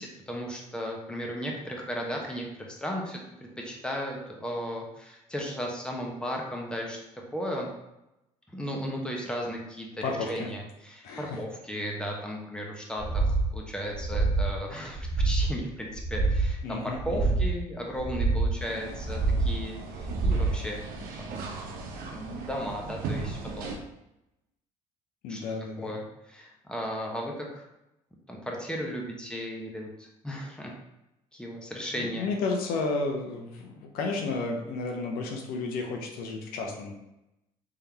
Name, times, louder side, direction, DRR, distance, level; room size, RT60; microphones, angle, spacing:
voice 1, 0.0-7.0 7.3-7.7 8.5-21.3 22.1-23.8 25.3-25.4 25.8-27.6 28.3-30.7 31.3-32.3, equal, 5° left, -1 dB, 1.0 m, -35 dB
voice 2, 10.0-10.5 11.0-11.4 16.6-17.3 25.2-25.9 32.0-36.9, left 3 dB, 80° left, 1 dB, 0.7 m, -32 dB
sound 1, 13.0-13.5 13.9-14.5 14.9-15.5 15.9-16.5 16.9-17.5 17.9-18.5 18.9-19.5 19.9-20.5, right 3 dB, 20° right, 1.1 m, -26 dB
sound 2, 18.6-23.8, right 3 dB, 75° right, 0.7 m, -38 dB
3.7 x 3.4 x 2.9 m, 0.88 s
supercardioid pair, 65°, 15 cm